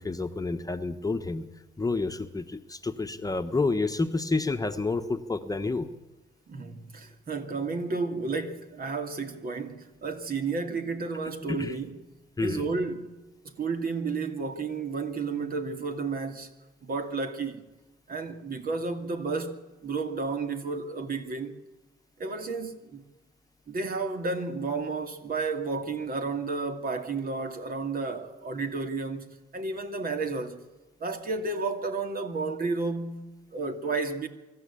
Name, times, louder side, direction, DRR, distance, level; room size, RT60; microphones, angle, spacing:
voice 1, 0.0-1.5 1.8-5.9 11.5-11.7 12.4-12.6, left 3 dB, 20° left, 1.3 m, -29 dB
voice 2, 6.5-11.9 12.4-13.1 13.4-16.5 16.8-17.7 18.1-21.6 22.2-23.0 23.7-30.7 31.0-34.3, right 4 dB, 45° right, 2.6 m, -32 dB
24.5 x 13.5 x 8.6 m
cardioid pair, 90°, 20 cm